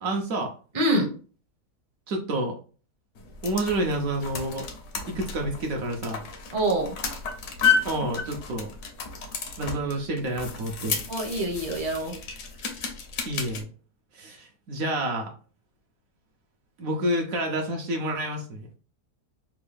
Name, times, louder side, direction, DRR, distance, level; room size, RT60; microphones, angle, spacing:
voice 1, 0.0-0.5 2.1-2.6 3.4-4.7 4.9-6.2 7.8-8.7 9.6-11.0 13.2-13.7 14.1-15.3 16.8-18.7, right 1 dB, 65° right, 2 dB, 1.0 m, -29 dB
voice 2, 0.7-1.1 6.5-6.9 11.1-12.1, right 1 dB, 25° right, 1 dB, 0.6 m, -25 dB
sound 1, 3.2-13.6, left 5 dB, 70° left, 1.3 m, -32 dB
3.5 x 2.2 x 3.3 m, 0.38 s
omnidirectional pair, 1.7 m